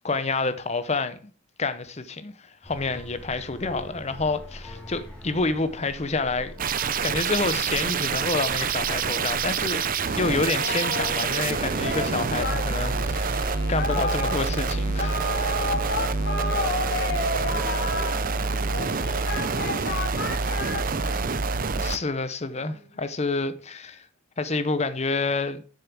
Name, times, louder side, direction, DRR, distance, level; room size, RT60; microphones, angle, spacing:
voice 1, 0.0-1.2 1.6-6.5 7.0-9.8 10.2-15.3 21.7-24.1 24.4-25.6, left 3 dB, 30° left, 0.8 m, -28 dB
sound 1, 2.6-16.3, equal, 5° left, 3.2 m, -43 dB
sound 2, 6.6-22.0, right 4 dB, 40° right, 0.6 m, -27 dB
Singing, 10.4-21.3, left 2 dB, 50° left, 1.9 m, -32 dB
voice 2, 16.3-17.6 18.1-20.2 20.7-21.3 22.6-23.0, equal, 85° left, 3.8 m, -48 dB
7.5 x 6.9 x 6.1 m
head